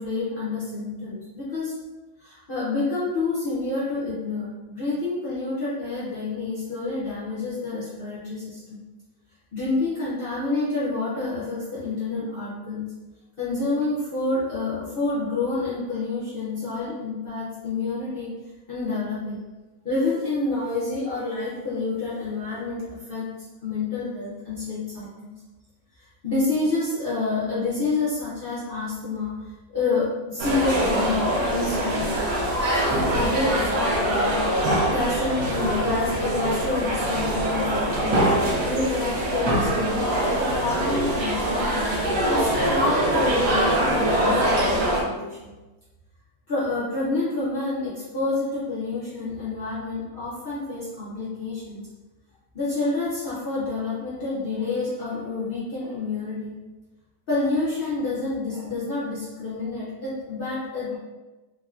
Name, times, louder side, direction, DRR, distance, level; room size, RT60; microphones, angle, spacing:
voice 1, 0.0-1.7 2.2-8.8 9.5-12.9 13.4-18.3 18.7-19.4 19.8-22.8 23.1-23.2 23.6-25.4 26.2-29.4 29.7-32.1 32.9-45.5 46.5-51.8 52.5-56.6 57.3-61.0, left 3 dB, 80° left, -8 dB, 0.5 m, -28 dB
sound 1, 30.4-45.0, right 1 dB, 65° right, 1.1 m, -23 dB
3.5 x 2.1 x 2.3 m, 1.1 s
omnidirectional pair, 1.8 m